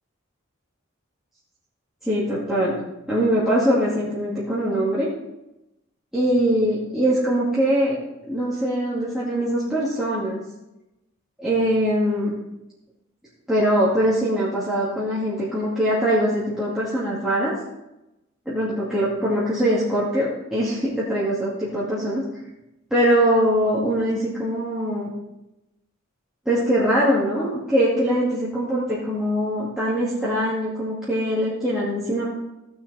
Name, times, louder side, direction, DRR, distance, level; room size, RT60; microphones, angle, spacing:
voice 1, 2.0-2.8 3.1-5.1 6.1-8.0 8.3-10.4 11.4-12.3 13.5-17.5 18.5-22.2 22.9-25.1 26.5-32.2, equal, ahead, -10 dB, 2.2 m, -22 dB
16.0 x 6.4 x 4.1 m, 0.94 s
head